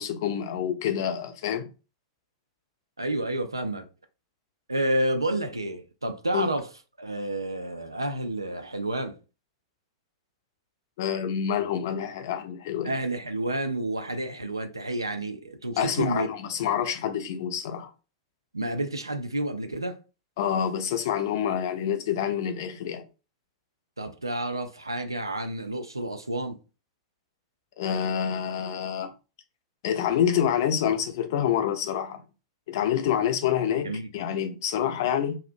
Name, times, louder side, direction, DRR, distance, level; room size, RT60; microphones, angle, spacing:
voice 1, 0.0-1.7 6.3-6.5 11.0-12.9 15.8-17.9 20.4-23.0 27.8-29.1 29.8-32.2 32.7-35.4, left 9 dB, 50° left, 0.4 m, -27 dB
voice 2, 3.0-3.9 4.7-6.7 7.0-9.2 12.8-16.3 18.5-20.0 24.0-26.6 33.8-34.1, right 1 dB, 85° right, 0.3 m, -30 dB
2.4 x 2.0 x 2.5 m
figure-of-eight pair, 95°, 2 cm